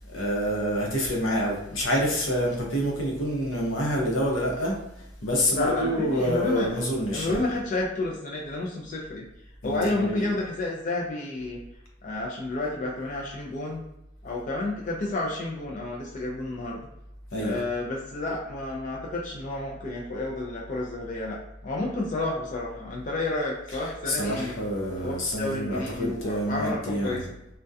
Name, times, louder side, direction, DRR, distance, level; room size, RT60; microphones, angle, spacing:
voice 1, 0.1-4.8 5.2-7.4 9.6-10.2 17.3-17.6 24.1-27.3, equal, 80° left, -2 dB, 0.7 m, -27 dB
voice 2, 5.6-6.7 7.1-9.2 9.6-11.6 12.0-13.8 14.2-16.8 17.4-21.4 21.6-24.5 25.0-27.3, left 2 dB, 40° left, -3 dB, 0.4 m, -30 dB
2.3 x 2.1 x 2.6 m, 0.85 s
head